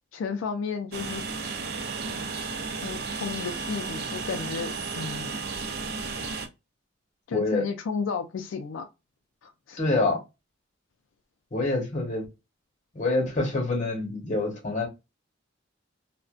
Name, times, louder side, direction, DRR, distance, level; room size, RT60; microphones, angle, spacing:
voice 1, 0.1-1.2 2.7-5.4 7.3-8.9 9.4-9.8, left 5 dB, 80° left, 0.3 m, -33 dB
Train, 0.9-6.5, right 4 dB, 50° right, 0.4 m, -33 dB
voice 2, 7.3-7.6 9.8-10.2 11.5-12.3 12.9-14.9, left 2 dB, 40° left, 1.0 m, -26 dB
2.4 x 2.2 x 2.3 m
head